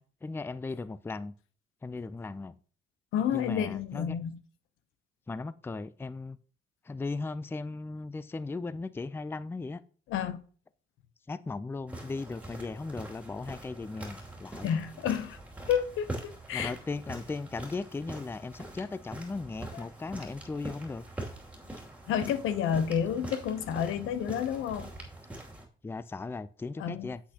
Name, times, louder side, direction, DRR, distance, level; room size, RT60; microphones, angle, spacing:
voice 1, 0.0-1.3 1.8-2.6 3.3-4.2 5.3-6.4 6.8-9.8 11.3-14.7 16.5-21.0 25.8-27.2, left 3 dB, 10° left, 0.4 m, -37 dB
voice 2, 3.1-4.4 10.1-10.4 14.6-15.4 15.7-16.7 19.7-19.8 22.1-24.9 26.8-27.1, left 8 dB, 85° left, 0.8 m, -30 dB
sound 1, 11.9-25.7, right 1 dB, 5° right, 2.6 m, -43 dB
8.4 x 8.1 x 2.9 m
cardioid pair, 90°, 20 cm